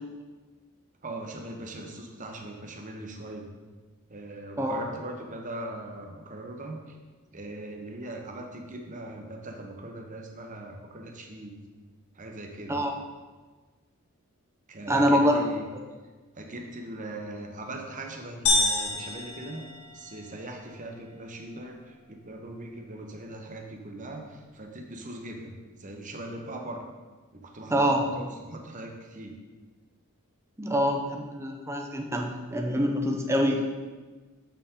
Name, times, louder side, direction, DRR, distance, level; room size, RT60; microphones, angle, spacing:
voice 1, 1.0-3.5 4.1-7.0 7.3-11.6 12.1-12.8 14.7-15.7 16.3-19.6 19.9-25.5 25.8-26.8 27.3-29.3, right 1 dB, 35° right, 2 dB, 1.0 m, -40 dB
voice 2, 14.9-15.3 27.7-28.1 30.6-33.6, equal, 10° right, 1 dB, 0.6 m, -25 dB
sound 1, 18.5-20.4, left 2 dB, 65° left, 1.3 m, -27 dB
7.2 x 6.9 x 3.8 m, 1.4 s
head